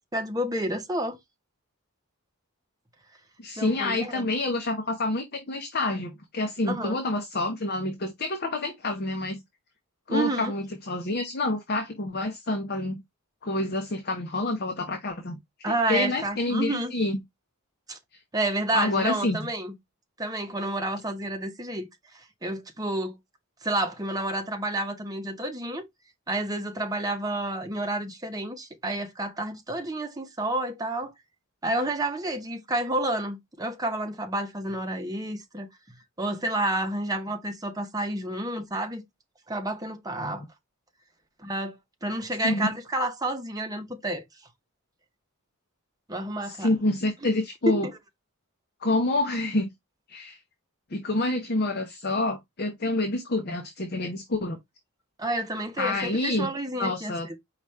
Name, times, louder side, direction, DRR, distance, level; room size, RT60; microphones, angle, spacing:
voice 1, 0.1-1.2 3.6-4.3 6.6-7.0 10.1-10.5 15.6-16.9 17.9-18.0 18.3-19.7 20.2-21.9 22.4-23.2 23.6-25.9 26.3-31.1 31.6-35.7 36.2-39.0 39.5-40.4 41.4-41.8 42.0-44.2 46.1-46.7 47.2-47.3 47.7-47.9 55.2-57.4, right 1 dB, 15° right, 0.8 m, -30 dB
voice 2, 3.4-9.4 10.1-13.0 13.4-15.4 15.7-17.2 18.7-19.4 40.2-40.4 42.4-42.7 46.5-47.9 48.8-49.7 50.1-50.4 50.9-54.6 55.8-56.5 56.8-57.3, left 2 dB, 45° left, 0.7 m, -28 dB
4.9 x 2.4 x 4.2 m
head